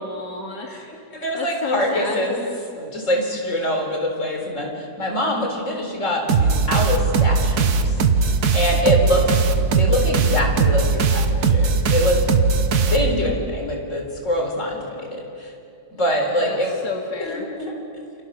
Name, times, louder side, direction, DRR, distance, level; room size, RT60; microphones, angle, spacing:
voice 1, 0.0-2.2 16.4-16.6 16.8-17.5, left 3 dB, 80° left, 1 dB, 2.7 m, -31 dB
voice 2, 1.1-2.4 2.8-9.3 9.8-12.2 12.8-15.5 15.9-16.8 17.2-17.7, equal, 45° left, 2 dB, 4.5 m, -24 dB
sound 1, 6.3-13.4, right 4 dB, 70° right, 1.7 m, -19 dB
29.0 x 28.5 x 6.5 m, 2.6 s
omnidirectional pair, 1.7 m